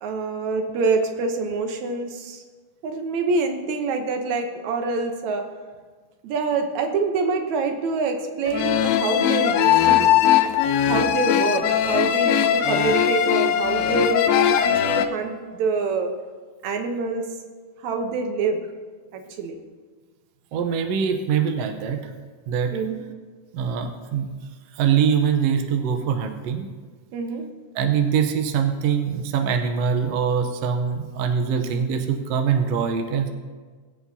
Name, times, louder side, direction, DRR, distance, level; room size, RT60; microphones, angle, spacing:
voice 1, 0.0-2.4 2.8-5.5 6.2-10.1 10.8-14.3 14.6-16.1 16.6-17.3 17.8-18.6 19.1-19.6 22.7-23.0 27.1-27.5, right 4 dB, 70° right, 5 dB, 2.0 m, -26 dB
sound 1, 8.5-15.1, left 10 dB, 85° left, 2.4 m, -20 dB
voice 2, 20.5-22.0 22.5-22.8 23.5-24.3 24.7-26.7 27.7-33.3, right 7 dB, 85° right, 5 dB, 1.4 m, -23 dB
21.0 x 8.4 x 2.8 m, 1.5 s
omnidirectional pair, 4.0 m